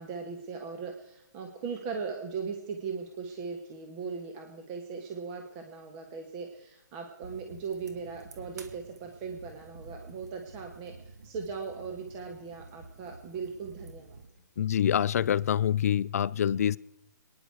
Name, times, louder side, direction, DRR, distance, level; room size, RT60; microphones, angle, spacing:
voice 1, 0.0-14.2, right 5 dB, 25° right, 3 dB, 1.6 m, -39 dB
sound 1, 7.2-14.3, right 3 dB, 60° right, 2.1 m, -50 dB
voice 2, 14.6-16.8, left 9 dB, 50° left, 20 dB, 0.4 m, -26 dB
27.0 x 10.5 x 4.8 m, 0.89 s
hypercardioid pair, 145°, 10 cm